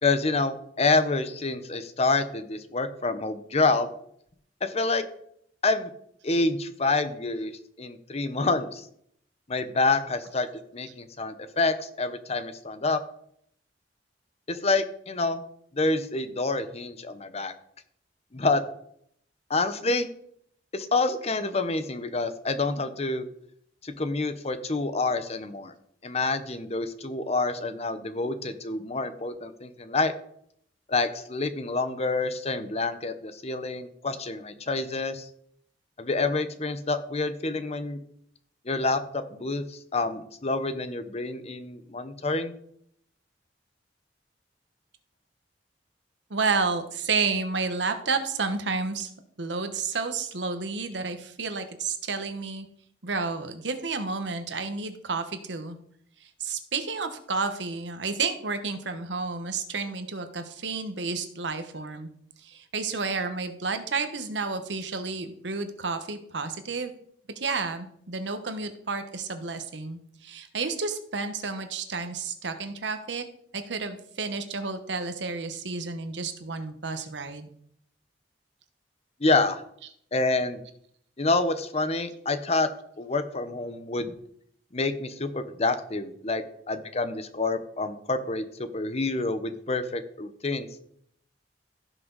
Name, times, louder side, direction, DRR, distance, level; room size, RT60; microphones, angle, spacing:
voice 1, 0.0-3.9 4.6-5.0 5.6-5.9 6.2-8.8 9.5-10.5 10.7-13.0 14.5-15.4 15.7-17.5 18.3-18.6 19.5-20.1 20.7-23.3 23.8-25.7 26.0-30.1 30.9-35.3 36.0-38.0 38.6-42.5 79.2-79.6 80.1-80.6 81.2-82.7 83.0-84.1 84.7-90.7, left 3 dB, 35° left, 10 dB, 0.9 m, -27 dB
voice 2, 46.3-49.1 49.4-52.7 53.0-55.8 56.4-62.1 62.4-66.9 67.4-73.2 73.5-77.5, right 4 dB, 85° right, 8 dB, 1.2 m, -31 dB
16.0 x 6.1 x 4.0 m, 0.69 s
head